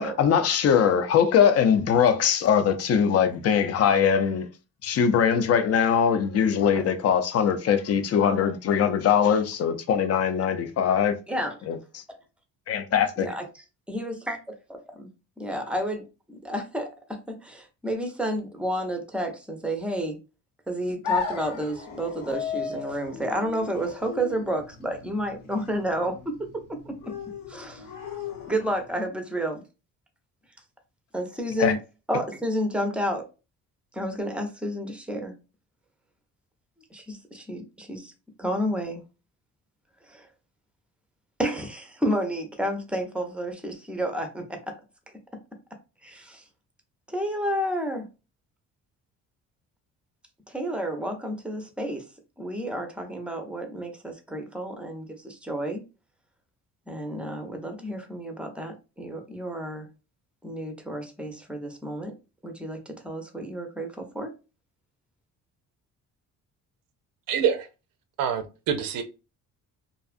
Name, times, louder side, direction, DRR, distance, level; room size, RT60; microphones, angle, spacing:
voice 1, 0.0-4.5 4.8-11.1 11.7-12.0 12.7-13.3 31.6-31.7, left 7 dB, 50° left, 0.5 m, -22 dB
voice 2, 13.9-14.4 14.7-15.1 15.4-20.2 20.7-26.3 26.9-27.1 27.5-27.9 28.5-29.6 31.1-31.8 32.1-33.3 33.9-35.3 36.9-38.1 38.4-39.0 40.1-40.3 41.4-44.7 46.0-46.4 47.1-48.1 50.5-52.0 52.4-55.8 56.9-59.9 60.4-62.1 62.4-64.3, equal, 5° right, 0.6 m, -31 dB
sound 1, 21.0-29.0, left 6 dB, 90° left, 0.8 m, -35 dB
voice 3, 67.3-67.7 68.2-69.0, right 8 dB, 85° right, 0.6 m, -26 dB
2.6 x 2.3 x 2.4 m
cardioid pair, 105°, 33 cm